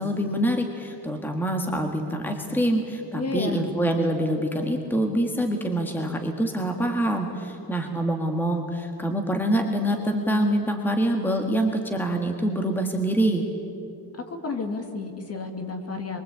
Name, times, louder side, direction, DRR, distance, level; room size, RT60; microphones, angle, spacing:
voice 1, 0.0-13.4, right 1 dB, 5° left, 3 dB, 1.7 m, -25 dB
voice 2, 3.1-3.6 14.3-16.2, left 3 dB, 35° left, 5 dB, 2.5 m, -31 dB
25.0 x 23.5 x 8.6 m, 2.6 s
cardioid pair, 160°, 41 cm